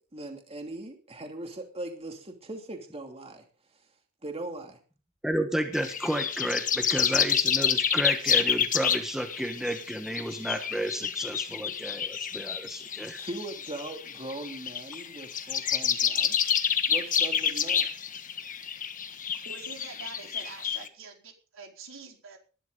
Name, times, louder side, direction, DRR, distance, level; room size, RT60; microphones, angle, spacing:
voice 1, 0.0-3.4 4.2-4.8 13.2-16.5 16.9-17.9, right 2 dB, 30° right, 3 dB, 2.7 m, -40 dB
voice 2, 5.2-13.2, equal, ahead, 5 dB, 1.4 m, -32 dB
sound 1, 5.7-20.9, left 8 dB, 40° left, 1.5 m, -29 dB
voice 3, 19.4-22.4, right 4 dB, 65° right, 2 dB, 4.7 m, -45 dB
20.0 x 12.0 x 4.0 m, 0.35 s
head